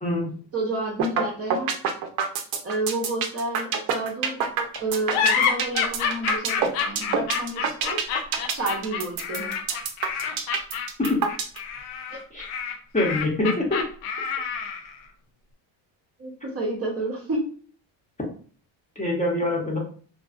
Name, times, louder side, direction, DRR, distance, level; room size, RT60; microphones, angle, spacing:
voice 1, 0.0-0.3 11.0-11.2 12.3-12.5 12.9-13.8 19.0-19.8, left 2 dB, 15° left, -2 dB, 0.8 m, -24 dB
voice 2, 0.5-1.8 2.6-4.4 4.8-8.0 8.5-9.5 12.1-12.2 16.2-17.5, right 2 dB, 30° right, 0 dB, 0.7 m, -30 dB
sound 1, 1.0-1.2 1.5-11.6, right 7 dB, 80° right, 0.7 m, -25 dB
sound 2, 5.1-14.9, left 6 dB, 85° left, 0.6 m, -28 dB
2.6 x 2.3 x 2.4 m, 0.43 s
cardioid pair, 95°, 47 cm